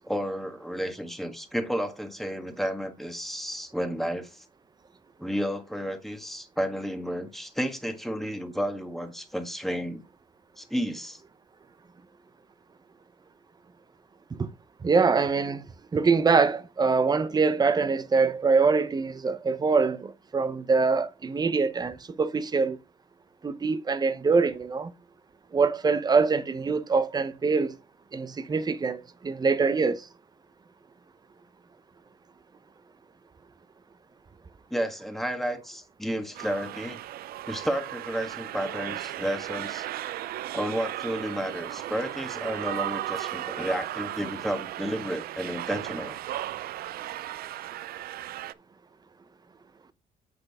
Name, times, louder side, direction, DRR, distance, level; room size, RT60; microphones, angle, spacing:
voice 1, 0.0-4.4 5.2-10.0 10.6-11.2 34.7-37.0 37.5-39.9 40.5-46.2, equal, ahead, 1.6 m, -32 dB
voice 2, 14.8-15.6 15.9-22.8 23.4-24.9 25.5-27.8 28.1-30.1, right 4 dB, 25° right, 0.8 m, -24 dB
sound 1, 36.3-48.5, right 13 dB, 65° right, 0.5 m, -36 dB
7.9 x 6.1 x 3.6 m
cardioid pair, 110°, 17 cm